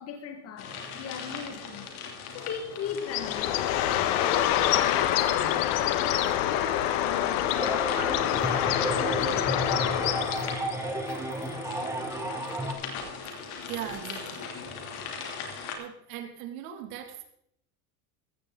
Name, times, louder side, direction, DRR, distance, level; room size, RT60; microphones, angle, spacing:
voice 1, 0.0-1.9 2.3-7.9, left 7 dB, 35° left, 1.7 m, -38 dB
sound 1, 0.6-15.7, left 5 dB, 85° left, 2.9 m, -40 dB
Bird, 3.0-10.8, left 11 dB, 60° left, 1.3 m, -26 dB
sound 2, 7.5-12.7, right 1 dB, 5° right, 1.5 m, -32 dB
voice 2, 13.7-14.5 15.0-15.2 15.8-17.2, right 10 dB, 75° right, 2.5 m, -39 dB
15.5 x 14.0 x 3.9 m
supercardioid pair, 150°, 42 cm